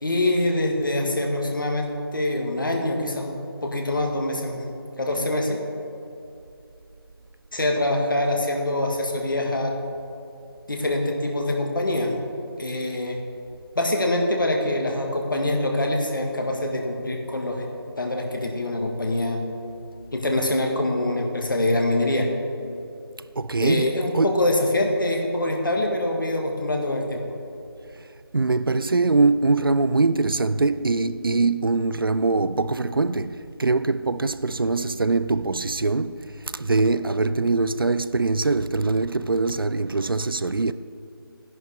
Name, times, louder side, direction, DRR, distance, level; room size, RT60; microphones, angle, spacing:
voice 1, 0.0-3.4 3.6-4.7 5.0-5.6 7.5-9.7 10.7-12.1 12.6-13.2 13.8-17.7 18.0-19.4 20.1-22.3 23.6-27.2, left 1 dB, 55° left, 1.8 m, -24 dB
voice 2, 23.4-24.4 28.0-28.1 28.3-40.7, right 3 dB, 65° right, 0.4 m, -23 dB
13.0 x 11.0 x 3.5 m
figure-of-eight pair, 160°, 13 cm